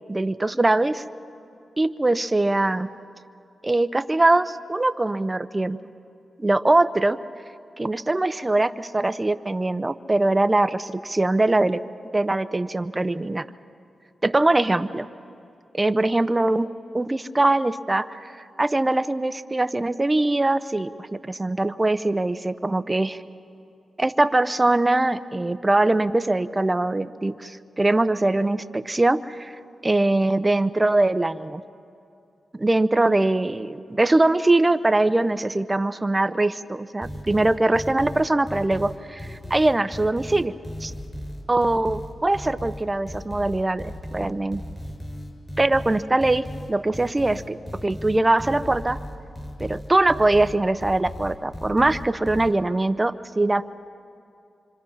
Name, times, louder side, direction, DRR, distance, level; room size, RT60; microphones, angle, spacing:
voice 1, 0.1-1.0 1.8-2.9 3.6-5.8 6.4-7.2 7.8-11.8 12.1-13.5 14.2-15.1 15.7-16.7 16.9-23.2 24.0-29.5 29.8-31.6 32.6-40.5 40.8-40.9 41.5-44.6 45.6-47.6 47.8-49.0 49.6-53.6, right 2 dB, 25° right, 12 dB, 0.9 m, -22 dB
sound 1, 37.0-52.5, left 1 dB, 25° left, 6.2 m, -36 dB
26.5 x 25.0 x 5.7 m, 2.5 s
cardioid pair, 60°, 0 cm